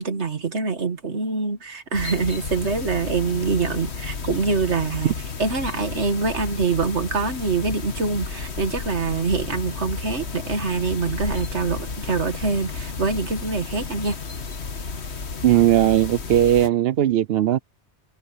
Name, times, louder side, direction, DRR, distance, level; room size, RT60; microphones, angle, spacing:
voice 1, 0.0-14.2, right 4 dB, 80° right, 2.0 m, -25 dB
sound 1, 1.9-16.7, left 4 dB, 75° left, 1.8 m, -32 dB
voice 2, 15.4-17.6, right 12 dB, 65° right, 0.8 m, -18 dB
omnidirectional pair, 1.1 m